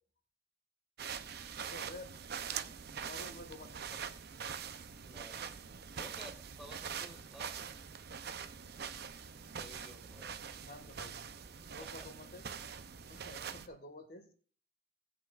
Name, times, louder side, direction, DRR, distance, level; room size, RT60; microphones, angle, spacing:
sound 1, 1.0-13.7, right 7 dB, 60° right, 0.7 m, -44 dB
voice 1, 1.6-2.1 2.8-4.1 10.7-11.3 11.7-12.5 13.1-14.3, left 2 dB, 55° left, 3 dB, 1.9 m, -51 dB
voice 2, 5.0-5.5 5.9-7.6 9.5-10.5 11.8-12.1, equal, ahead, 2 dB, 2.2 m, -54 dB
18.5 x 8.1 x 2.5 m, 0.43 s
head